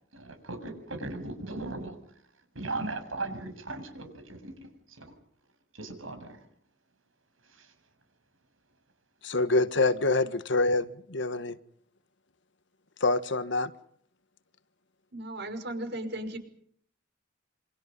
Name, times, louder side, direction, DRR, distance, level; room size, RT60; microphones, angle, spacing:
voice 1, 0.1-2.0 2.5-5.1 5.7-6.4 7.5-7.7, right 2 dB, 85° right, 7 dB, 7.3 m, -38 dB
voice 2, 9.2-11.6 13.0-13.7, left 2 dB, 65° left, 12 dB, 1.6 m, -26 dB
voice 3, 15.1-16.4, right 1 dB, 60° right, 8 dB, 5.6 m, -36 dB
28.0 x 26.0 x 5.5 m, 0.63 s
head